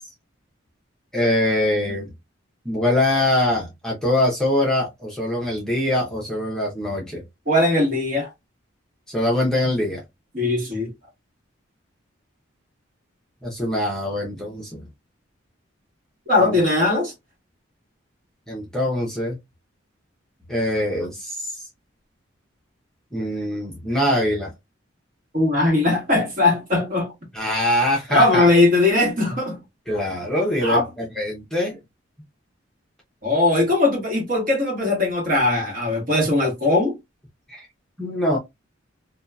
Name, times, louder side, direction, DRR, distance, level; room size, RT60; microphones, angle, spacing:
voice 1, 1.1-2.1 2.6-7.2 9.1-10.0 13.4-14.8 16.4-16.6 18.5-19.4 20.5-21.7 23.1-24.5 27.3-28.5 29.9-31.8 37.5-37.7 38.0-38.4, left 1 dB, 5° left, 0.7 m, -23 dB
voice 2, 7.5-8.3 10.3-10.9 16.3-17.1 25.3-27.1 28.1-29.6 30.6-30.8 33.2-36.9, left 2 dB, 45° right, 1.3 m, -19 dB
2.7 x 2.3 x 2.2 m
head